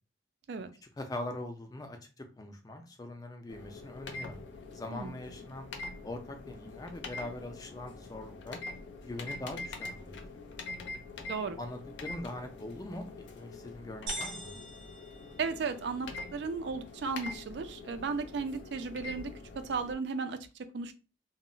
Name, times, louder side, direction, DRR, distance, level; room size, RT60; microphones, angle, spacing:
voice 1, 1.0-4.4 4.7-5.7 6.0-8.6 9.0-10.2 11.6-14.5, left 1 dB, 20° left, 5 dB, 0.3 m, -42 dB
sound 1, 3.5-19.9, left 3 dB, 75° left, 0.5 m, -44 dB
sound 2, 14.1-16.0, right 3 dB, 80° right, 0.8 m, -43 dB
voice 2, 15.4-19.3 19.6-20.9, right 4 dB, 65° right, 10 dB, 0.4 m, -35 dB
2.0 x 2.0 x 3.7 m, 0.32 s
head